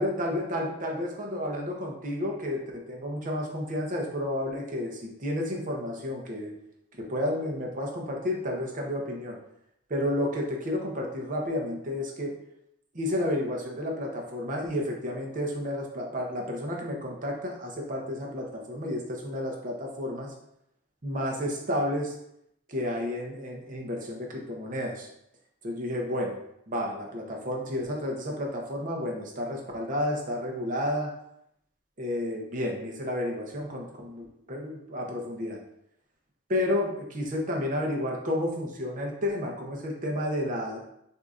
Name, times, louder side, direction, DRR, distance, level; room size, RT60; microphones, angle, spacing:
voice 1, 0.0-6.5 7.0-9.4 9.9-12.4 12.9-20.3 21.0-22.1 22.7-25.1 25.6-26.4 26.7-31.1 32.0-35.6 36.5-40.8, left 1 dB, 40° right, 0 dB, 0.8 m, -31 dB
6.2 x 2.7 x 2.5 m, 0.78 s
head